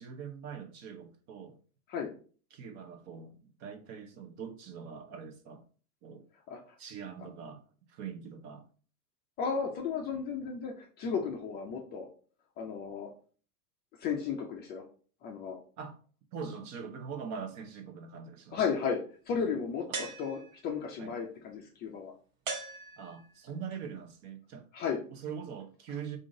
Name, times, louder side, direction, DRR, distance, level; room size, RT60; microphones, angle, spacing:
voice 1, 0.0-1.6 2.5-5.6 6.0-6.2 6.8-7.6 7.9-8.6 15.8-16.0 16.3-18.6 19.9-20.0 21.0-21.1 23.0-24.7 25.1-26.2, right 6 dB, 35° right, 0.7 m, -43 dB
voice 2, 9.4-12.1 12.6-13.1 14.0-14.8 15.2-15.6 18.5-19.0 19.3-22.1 24.7-25.0, left 6 dB, 25° left, 0.4 m, -34 dB
sound 1, 19.9-20.8 22.5-23.4, right 4 dB, 55° right, 1.3 m, -40 dB
3.6 x 2.6 x 3.7 m
hypercardioid pair, 120°, 45 cm